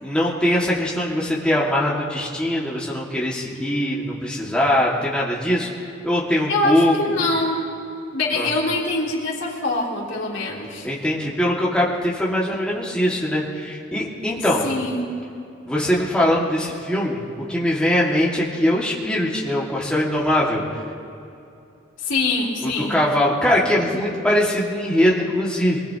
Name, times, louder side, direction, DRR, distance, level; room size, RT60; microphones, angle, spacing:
voice 1, 0.0-5.7 6.0-7.2 8.3-8.5 10.8-14.7 15.7-20.6 22.6-25.8, left 1 dB, 5° left, -6 dB, 1.9 m, -21 dB
voice 2, 6.5-7.7 8.1-10.9 14.4-15.1 22.0-23.0, left 2 dB, 75° left, -5 dB, 3.4 m, -24 dB
25.0 x 19.5 x 2.9 m, 2.7 s
head